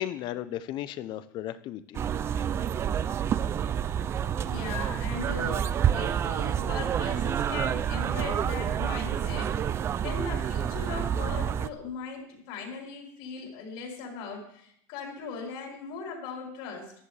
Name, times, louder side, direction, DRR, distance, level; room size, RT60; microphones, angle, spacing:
voice 1, 0.0-2.0, left 12 dB, 45° left, 14 dB, 0.7 m, -35 dB
sound 1, 1.9-11.7, right 9 dB, 25° right, 0.3 m, -28 dB
voice 2, 4.5-9.5 10.0-16.9, left 5 dB, 70° left, -1 dB, 4.2 m, -39 dB
14.5 x 11.0 x 3.3 m, 0.69 s
cardioid pair, 150°, 11 cm